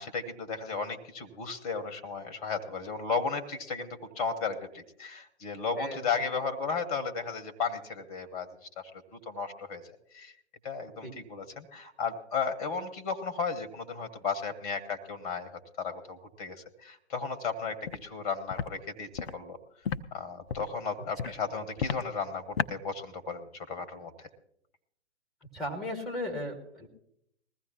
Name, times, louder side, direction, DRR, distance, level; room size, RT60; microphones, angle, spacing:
voice 1, 0.0-8.5 8.8-9.8 10.1-10.3 10.6-15.5 15.8-19.6 20.1-24.3, left 5 dB, 30° left, 9 dB, 1.2 m, -34 dB
Walk footsteps, 17.9-18.0 18.5-18.7 19.2-19.3 19.9-20.0 20.5-20.7 21.2-21.3 21.8-22.0 22.6-22.7, left 7 dB, 60° left, 0.7 m, -31 dB
voice 2, 25.5-26.9, left 1 dB, ahead, 3 dB, 1.7 m, -36 dB
20.5 x 15.0 x 2.9 m, 0.74 s
figure-of-eight pair, 125°, 35 cm